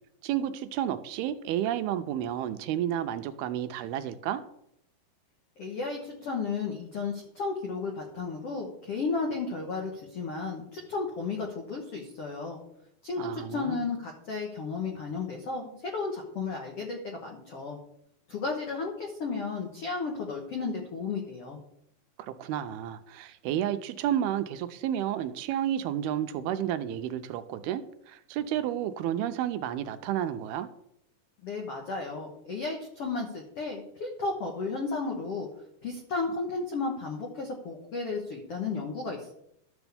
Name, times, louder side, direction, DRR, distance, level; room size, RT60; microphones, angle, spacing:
voice 1, 0.2-4.4 13.2-13.8 22.2-30.7, right 11 dB, 85° right, 10 dB, 2.5 m, -31 dB
voice 2, 5.6-12.6 13.0-17.8 18.3-21.6 31.4-35.5 35.8-39.3, left 4 dB, 80° left, 1 dB, 1.3 m, -33 dB
13.0 x 7.1 x 3.5 m, 0.76 s
omnidirectional pair, 4.6 m